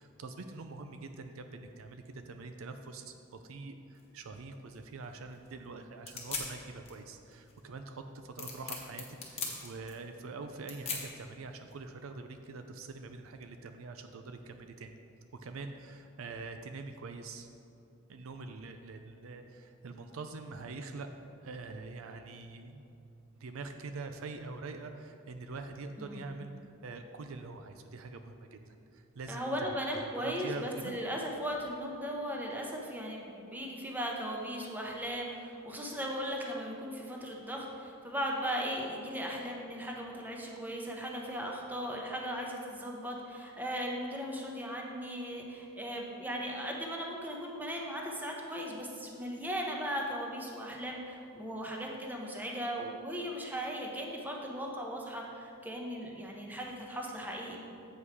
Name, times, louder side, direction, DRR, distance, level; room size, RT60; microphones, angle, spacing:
voice 1, 0.0-15.0 15.4-17.5 18.1-21.1 21.4-22.9 23.4-26.5 26.8-30.9, right 3 dB, 75° right, 7 dB, 0.5 m, -44 dB
sound 1, 3.9-12.0, left 4 dB, 30° left, 1.2 m, -43 dB
voice 2, 26.0-26.3 29.3-57.6, equal, 10° right, -1 dB, 0.9 m, -37 dB
8.0 x 5.5 x 4.8 m, 2.5 s
head